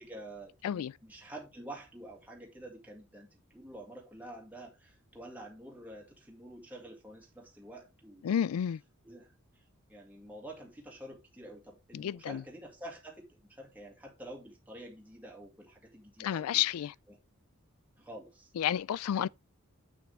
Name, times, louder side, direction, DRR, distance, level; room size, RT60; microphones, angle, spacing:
voice 1, 0.0-8.2 9.0-9.3 9.6-9.7 9.9-16.6 17.1-17.2 18.0-18.5 19.2-19.3, right 1 dB, 10° right, 1.9 m, -48 dB
voice 2, 8.2-8.8 11.9-12.4 16.2-17.0 18.5-19.3, left 10 dB, 80° left, 0.3 m, -31 dB
8.5 x 6.3 x 3.3 m
head